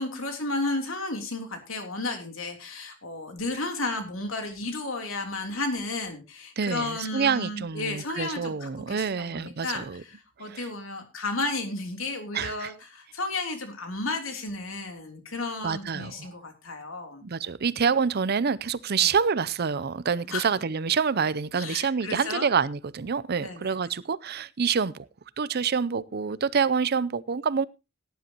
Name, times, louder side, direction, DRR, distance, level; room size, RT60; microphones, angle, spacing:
voice 1, 0.0-17.2 19.0-19.1 20.3-20.5 21.5-22.5 23.4-23.7, left 2 dB, 80° left, 3.3 m, -33 dB
voice 2, 6.6-10.0 10.4-10.7 12.3-12.7 15.6-16.3 17.2-25.1 25.4-27.7, right 6 dB, 50° right, 0.6 m, -27 dB
17.5 x 10.5 x 3.0 m
head